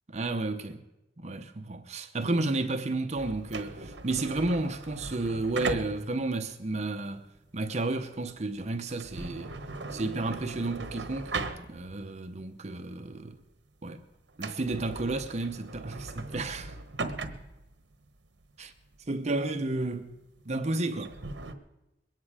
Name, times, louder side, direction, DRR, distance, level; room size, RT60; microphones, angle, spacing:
voice 1, 0.1-0.8 1.2-7.3 7.5-9.5 9.9-13.4 13.8-14.0 14.4-16.8 18.6-18.7 19.1-20.1 20.5-21.1, right 2 dB, 40° right, 0.8 m, -32 dB
sound 1, 3.2-12.2 12.6-12.7 13.3-13.5 13.8-13.9 14.3-21.5, right 3 dB, 75° right, 1.2 m, -39 dB
22.5 x 9.4 x 4.9 m
head